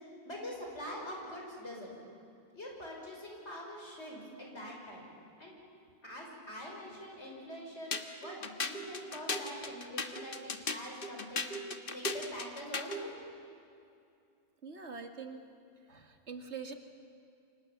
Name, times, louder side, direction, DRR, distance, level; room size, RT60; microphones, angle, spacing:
voice 1, 0.2-2.0 2.5-5.0 5.4-5.5 6.0-11.5 11.9-13.1, equal, 85° left, -1 dB, 6.1 m, -44 dB
sound 1, 7.9-13.1, left 3 dB, 55° left, 1.6 m, -37 dB
voice 2, 14.6-15.4 15.9-16.7, right 5 dB, 85° right, 5 dB, 2.3 m, -44 dB
29.5 x 25.5 x 7.3 m, 2.5 s
omnidirectional pair, 1.1 m